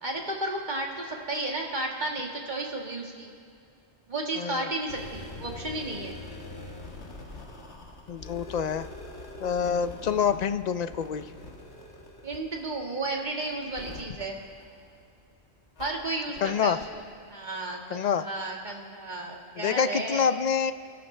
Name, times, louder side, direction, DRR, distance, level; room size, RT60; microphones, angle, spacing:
voice 1, 0.0-3.3 4.1-6.2 12.2-14.4 15.8-17.0 17.3-20.3, right 2 dB, 45° right, -1 dB, 1.9 m, -33 dB
voice 2, 4.4-4.7 8.1-8.9 9.4-11.2 16.4-16.8 17.9-18.3 19.6-20.7, left 7 dB, 50° left, 12 dB, 0.5 m, -27 dB
sound 1, 4.8-15.2 15.8-15.9 16.4-16.5 16.8-16.9, left 2 dB, 85° left, 1.9 m, -44 dB
29.5 x 12.0 x 3.3 m, 2.5 s
omnidirectional pair, 1.1 m